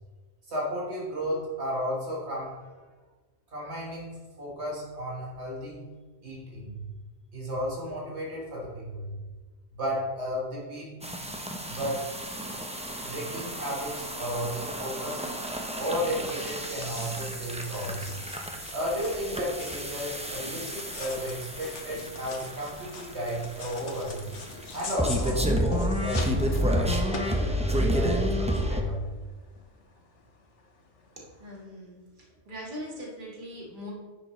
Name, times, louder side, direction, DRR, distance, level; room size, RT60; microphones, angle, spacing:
voice 1, 0.5-2.6 3.5-5.9 6.2-6.8 7.3-9.2 9.7-11.0 11.7-12.1 13.0-15.3 15.8-18.1 18.7-24.2 24.7-29.1, equal, 70° right, -4 dB, 1.8 m, -33 dB
sound 1, 11.0-28.8, equal, 10° right, 0.5 m, -31 dB
sound 2, 16.3-31.6, left 4 dB, 80° left, 1.4 m, -44 dB
voice 2, 31.4-32.0 32.5-33.9, equal, 45° right, -4 dB, 1.9 m, -40 dB
10.0 x 6.8 x 3.1 m, 1.4 s
omnidirectional pair, 1.2 m